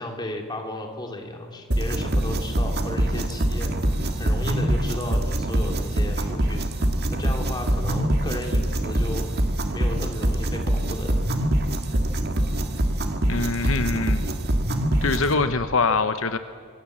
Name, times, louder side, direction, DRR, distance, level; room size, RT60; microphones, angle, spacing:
voice 1, 0.0-9.2 9.7-11.3, left 1 dB, 20° left, 2 dB, 2.8 m, -34 dB
sound 1, 1.7-15.3, right 1 dB, 50° right, 1.7 m, -24 dB
voice 2, 13.3-14.2 15.0-16.4, left 4 dB, 65° left, 10 dB, 0.9 m, -23 dB
25.5 x 18.0 x 7.4 m, 2.1 s
head